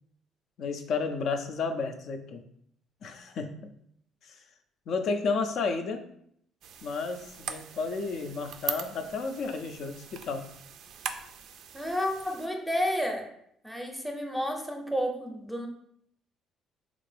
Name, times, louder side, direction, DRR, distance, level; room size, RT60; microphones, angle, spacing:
voice 1, 0.6-2.4 3.0-3.7 4.2-4.4 4.9-6.0 6.8-10.5, left 4 dB, 65° left, 7 dB, 0.4 m, -32 dB
sound 1, 6.6-12.5, right 8 dB, 70° right, 0.3 m, -41 dB
voice 2, 11.7-13.3 13.6-15.7, equal, ahead, 2 dB, 0.6 m, -31 dB
3.6 x 2.5 x 3.3 m, 0.70 s
cardioid pair, 95°, 0 cm